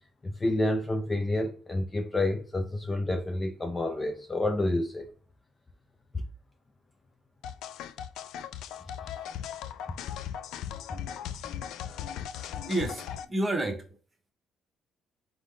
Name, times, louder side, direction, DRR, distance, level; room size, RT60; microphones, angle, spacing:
voice 1, 0.2-5.1, left 1 dB, 15° left, 0.4 m, -29 dB
sound 1, 7.4-13.2, left 9 dB, 85° left, 0.3 m, -38 dB
voice 2, 12.7-14.0, right 1 dB, 15° right, 0.9 m, -30 dB
3.8 x 3.7 x 3.2 m
cardioid pair, 145°, 0 cm